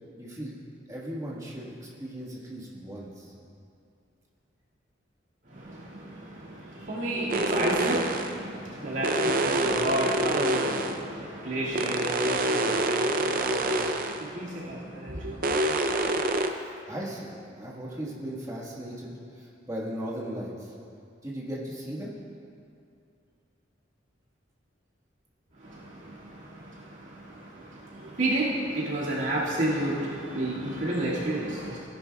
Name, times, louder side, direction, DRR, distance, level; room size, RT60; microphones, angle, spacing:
voice 1, 0.2-0.6 0.9-3.3 16.9-20.7 21.2-22.1, equal, 15° right, -5 dB, 1.6 m, -37 dB
voice 2, 5.5-15.4 25.6-31.8, right 1 dB, 80° right, -8 dB, 2.2 m, -31 dB
sound 1, 7.3-8.4 9.0-11.0 11.8-14.3 15.4-16.5, right 2 dB, 45° right, 0.5 m, -26 dB
16.5 x 10.5 x 2.4 m, 2.5 s
head